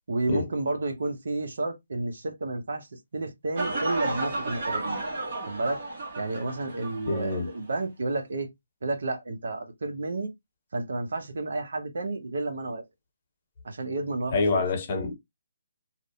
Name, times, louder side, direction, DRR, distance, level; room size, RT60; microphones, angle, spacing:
voice 1, 0.1-2.9 3.1-5.0 5.5-5.8 6.2-8.5 8.8-10.3 10.7-12.8 13.6-14.6, right 2 dB, 70° right, 0.7 m, -31 dB
sound 1, 3.6-7.4 7.7-7.8, right 2 dB, 50° right, 1.2 m, -32 dB
voice 2, 7.1-7.5 14.3-15.1, left 3 dB, 35° left, 0.7 m, -26 dB
2.6 x 2.1 x 2.3 m
hypercardioid pair, 155°, 0 cm